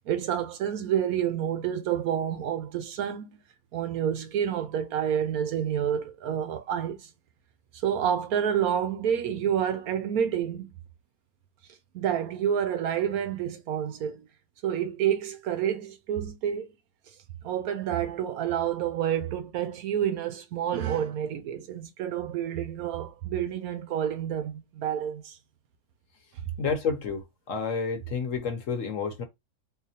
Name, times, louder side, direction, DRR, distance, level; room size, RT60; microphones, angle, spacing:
voice 1, 0.1-3.4 3.7-7.1 7.7-10.7 11.9-14.3 14.6-16.7 17.4-25.4, right 9 dB, 70° right, 1.0 m, -29 dB
voice 2, 26.6-29.2, left 5 dB, 55° left, 1.1 m, -30 dB
3.8 x 2.9 x 2.8 m
omnidirectional pair, 1.7 m